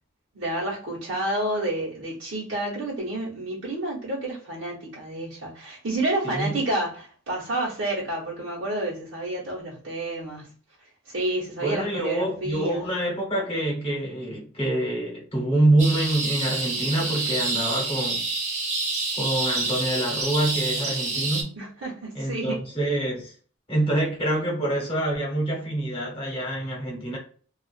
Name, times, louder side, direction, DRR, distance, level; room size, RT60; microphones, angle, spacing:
voice 1, 0.3-10.5 11.1-12.8 21.5-22.6, right 1 dB, 60° right, 1.1 m, -29 dB
voice 2, 6.2-6.6 11.6-18.3 19.1-21.5 22.1-23.3 23.7-27.2, right 1 dB, 25° left, 1.0 m, -26 dB
sound 1, 15.8-21.4, right 3 dB, 35° right, 0.5 m, -28 dB
2.4 x 2.4 x 2.4 m
head